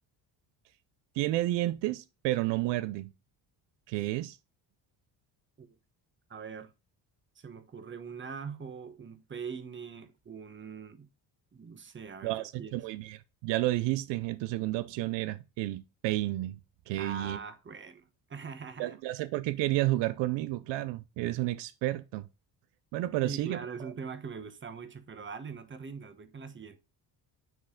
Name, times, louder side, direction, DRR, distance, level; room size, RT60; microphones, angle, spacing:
voice 1, 1.1-3.1 3.9-4.4 12.2-16.6 16.9-17.4 18.8-22.3 22.9-23.9, right 17 dB, 85° right, 0.6 m, -31 dB
voice 2, 6.3-6.7 7.3-11.1 11.5-12.8 17.0-19.0 23.2-26.8, right 5 dB, 25° right, 1.1 m, -42 dB
9.4 x 3.3 x 3.6 m
cardioid pair, 95°, 43 cm